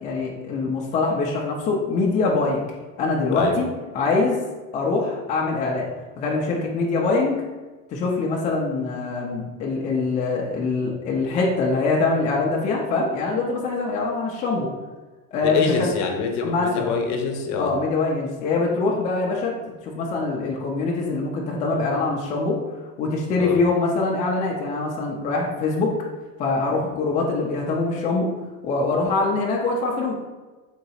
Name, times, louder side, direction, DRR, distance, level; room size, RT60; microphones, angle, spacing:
voice 1, 0.0-2.6 3.0-3.7 3.9-4.4 4.7-5.9 6.2-7.4 7.9-14.7 15.3-15.9 16.4-16.9 17.6-19.5 19.8-22.6 23.0-25.9 26.4-28.3 28.6-30.1, left 3 dB, 20° left, -3 dB, 0.3 m, -23 dB
voice 2, 15.4-17.7 23.4-23.6, left 5 dB, 45° left, 3 dB, 0.8 m, -25 dB
3.8 x 2.9 x 4.1 m, 1.3 s
supercardioid pair, 135°, 41 cm